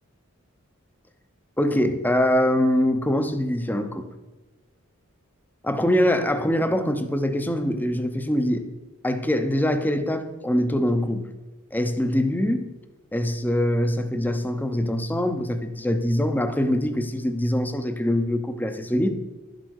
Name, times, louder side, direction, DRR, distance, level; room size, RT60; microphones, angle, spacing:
voice 1, 1.6-4.1 5.6-8.7 9.0-11.2 11.7-12.7 13.1-19.1, left 1 dB, 10° left, 8 dB, 0.7 m, -23 dB
11.5 x 7.9 x 6.5 m, 1.1 s
head